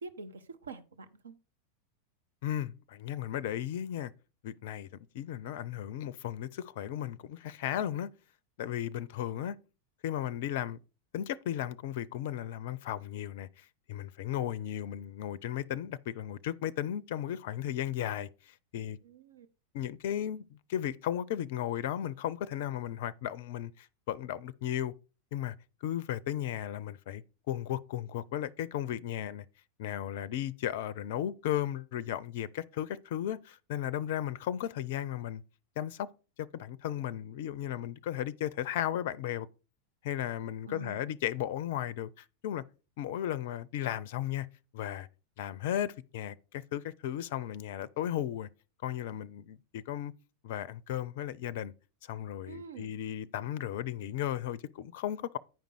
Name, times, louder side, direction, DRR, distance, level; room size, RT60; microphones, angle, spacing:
voice 1, 0.0-1.4 19.0-19.5 40.7-41.1 52.4-53.0, right 4 dB, 70° right, 0.7 m, -46 dB
voice 2, 2.4-4.1 4.4-4.9 5.1-8.1 8.6-9.6 10.0-10.8 11.1-19.0 19.7-24.9 25.3-25.5 25.8-29.5 29.8-35.4 35.8-36.1 36.4-39.5 40.0-42.6 43.0-44.5 44.7-45.1 45.4-48.5 48.8-50.1 50.4-51.7 52.0-55.4, left 11 dB, 50° left, 0.4 m, -35 dB
9.1 x 5.2 x 4.6 m
figure-of-eight pair, 90°, 0 cm